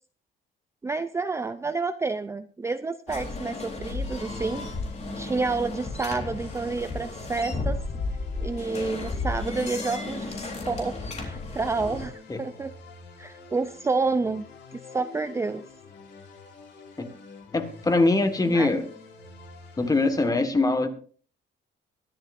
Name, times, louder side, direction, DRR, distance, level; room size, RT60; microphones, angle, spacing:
voice 1, 0.8-4.7 5.2-7.8 8.4-12.7 13.2-14.4 14.7-15.6 18.4-18.7, right 3 dB, 15° right, 10 dB, 0.5 m, -29 dB
sound 1, 3.1-12.1, left 3 dB, 35° left, 3.7 m, -33 dB
sound 2, 4.2-20.3, left 4 dB, 65° left, 4.3 m, -47 dB
voice 2, 17.5-18.9 19.8-20.9, left 2 dB, 20° left, 8 dB, 1.6 m, -22 dB
23.0 x 11.5 x 2.6 m, 0.43 s
cardioid pair, 145°, 20 cm